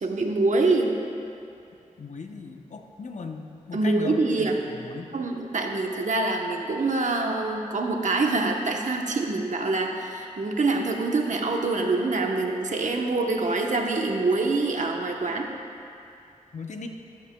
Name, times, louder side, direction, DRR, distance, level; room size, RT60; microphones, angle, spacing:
voice 1, 0.0-0.9 3.7-4.6 5.1-15.5, right 3 dB, 65° right, 1 dB, 1.0 m, -25 dB
voice 2, 2.0-5.1 16.5-16.9, left 4 dB, 60° left, 4 dB, 0.8 m, -38 dB
14.0 x 12.5 x 2.3 m, 2.5 s
wide cardioid pair, 80°, 14 cm